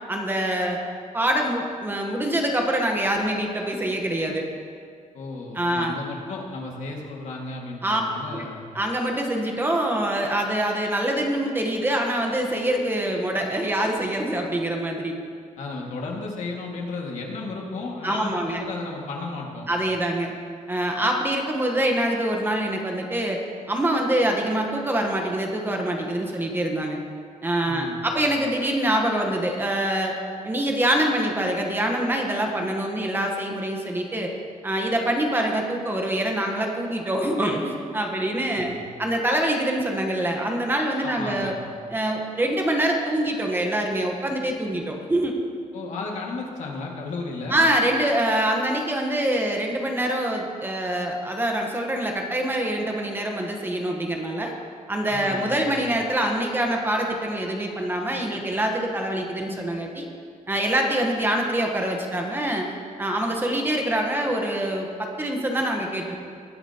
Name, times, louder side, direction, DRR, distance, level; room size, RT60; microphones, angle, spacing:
voice 1, 0.1-0.8 1.1-4.5 5.5-6.0 7.8-8.0 8.3-8.5 8.7-15.2 18.0-18.6 19.7-20.3 20.7-23.4 23.7-27.0 27.4-30.1 30.4-34.3 34.6-41.5 41.9-45.3 47.5-54.5 54.9-60.1 60.5-62.7 63.0-66.2, right 1 dB, 15° right, 1 dB, 1.0 m, -25 dB
voice 2, 5.1-8.6 15.6-19.7 27.7-28.2 38.5-38.8 41.0-41.6 45.7-47.7 55.1-55.7, left 3 dB, 60° left, -1 dB, 1.9 m, -34 dB
20.0 x 9.8 x 2.9 m, 2.2 s
cardioid pair, 170°, 14 cm